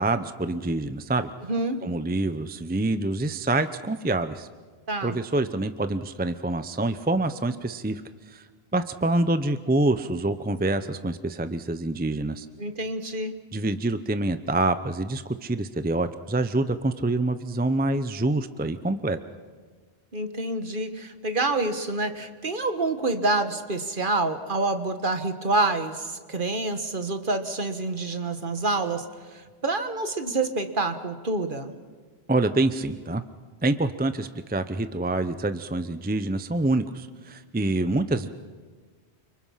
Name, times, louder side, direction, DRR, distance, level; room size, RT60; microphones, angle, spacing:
voice 1, 0.0-1.3 1.8-4.5 5.0-8.0 8.3-8.4 8.7-12.5 13.5-19.2 32.3-33.2 33.6-38.3, right 2 dB, 10° right, 11 dB, 0.7 m, -26 dB
voice 2, 1.5-1.8 4.9-5.2 12.6-13.4 20.1-31.7, right 2 dB, 50° right, 8 dB, 1.7 m, -27 dB
29.0 x 25.5 x 5.7 m, 1.5 s
omnidirectional pair, 1.1 m